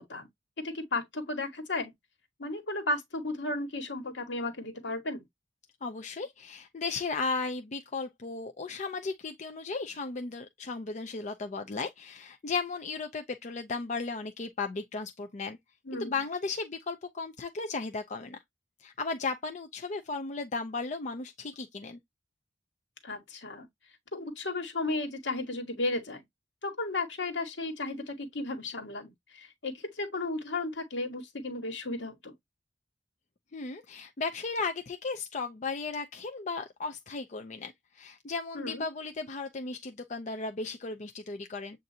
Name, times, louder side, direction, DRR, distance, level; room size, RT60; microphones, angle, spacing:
voice 1, 0.6-1.9 2.4-5.2 15.8-16.2 23.0-23.7 24.1-26.2 26.6-32.3 38.5-38.8, left 2 dB, 75° left, 1.4 m, -34 dB
voice 2, 5.8-15.6 16.0-18.4 18.8-22.0 33.5-41.8, left 4 dB, 40° left, 0.5 m, -35 dB
7.5 x 2.6 x 2.7 m
head